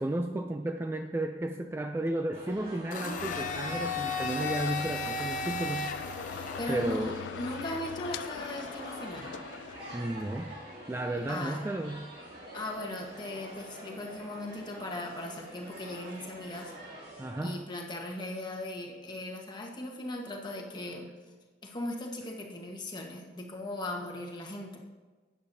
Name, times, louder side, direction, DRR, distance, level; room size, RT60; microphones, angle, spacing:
voice 1, 0.0-5.9 6.7-7.2 9.9-10.5 10.9-12.1 17.2-17.6, right 1 dB, 15° right, 5 dB, 0.3 m, -33 dB
sound 1, 2.3-17.5, right 1 dB, 60° right, 2.7 m, -46 dB
Domestic sounds home sounds, 2.9-6.9, left 3 dB, 50° left, 0.8 m, -35 dB
sound 2, 3.2-10.1, left 8 dB, 90° left, 0.3 m, -42 dB
voice 2, 6.6-9.4 11.3-11.6 12.5-16.7 17.4-21.1 21.6-24.8, left 1 dB, 25° left, -1 dB, 1.3 m, -38 dB
12.0 x 8.8 x 2.7 m, 1.3 s
head